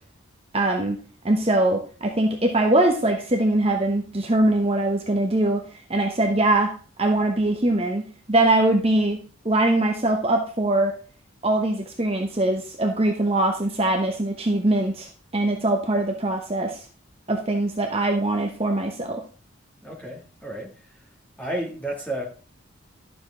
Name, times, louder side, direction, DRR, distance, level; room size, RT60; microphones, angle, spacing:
voice 1, 0.5-1.0 1.2-5.6 5.9-6.7 7.0-9.2 9.4-11.0 11.4-16.8 17.3-19.2, right 1 dB, 30° right, 3 dB, 1.0 m, -22 dB
voice 2, 19.8-20.7 21.4-22.3, right 1 dB, 10° left, -1 dB, 2.5 m, -31 dB
12.0 x 7.0 x 3.8 m, 0.37 s
head